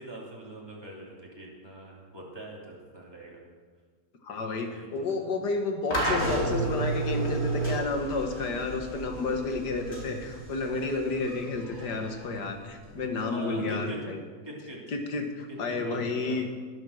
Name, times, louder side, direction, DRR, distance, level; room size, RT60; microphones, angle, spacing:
voice 1, 0.0-3.4 4.7-5.1 13.3-14.1 14.4-14.8 15.5-16.5, right 1 dB, 15° right, -4 dB, 3.1 m, -42 dB
voice 2, 4.2-14.2 14.9-16.5, left 3 dB, 75° left, 4 dB, 2.2 m, -31 dB
sound 1, 5.9-13.0, right 2 dB, 40° left, 3.8 m, -32 dB
20.5 x 7.4 x 6.6 m, 1.5 s
omnidirectional pair, 1.8 m